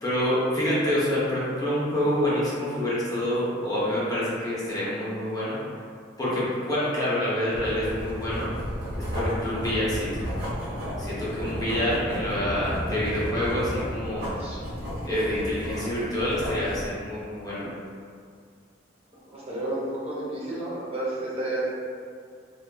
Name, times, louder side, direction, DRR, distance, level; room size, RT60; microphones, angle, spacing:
voice 1, 0.0-5.6 6.2-8.5 9.0-10.3 11.0-14.3 15.1-17.7, left 1 dB, 20° left, -9 dB, 0.5 m, -27 dB
Writing, 7.5-16.9, equal, 50° right, 1.1 m, -33 dB
voice 2, 19.3-21.7, right 1 dB, 30° right, -8 dB, 0.6 m, -31 dB
2.4 x 2.2 x 2.2 m, 2.2 s
head